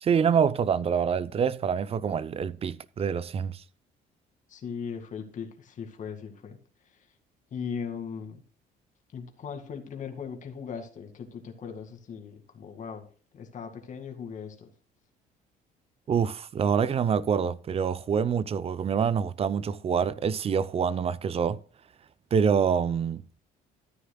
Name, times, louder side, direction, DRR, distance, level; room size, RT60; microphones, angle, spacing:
voice 1, 0.0-3.6 16.1-21.6 22.3-23.2, right 7 dB, 35° right, 0.6 m, -26 dB
voice 2, 4.5-6.6 7.5-8.4 9.1-13.0 13.3-14.7, left 6 dB, 50° left, 2.1 m, -38 dB
13.5 x 9.6 x 2.3 m
cardioid pair, 110°, 17 cm